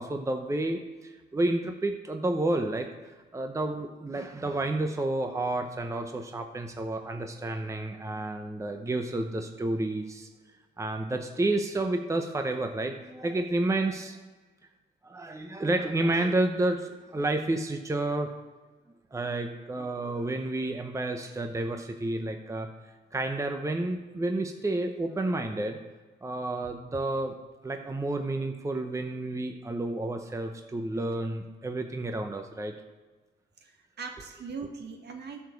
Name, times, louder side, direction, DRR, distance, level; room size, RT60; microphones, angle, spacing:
voice 1, 0.0-2.9 3.3-10.3 10.8-14.2 15.0-18.4 19.1-22.7 23.1-25.8 26.2-27.3 27.6-32.7, right 2 dB, 15° right, 5 dB, 0.8 m, -30 dB
voice 2, 33.6-35.4, right 5 dB, 55° right, 4 dB, 1.4 m, -40 dB
10.0 x 5.0 x 6.9 m, 1.3 s
cardioid pair, 90°, 20 cm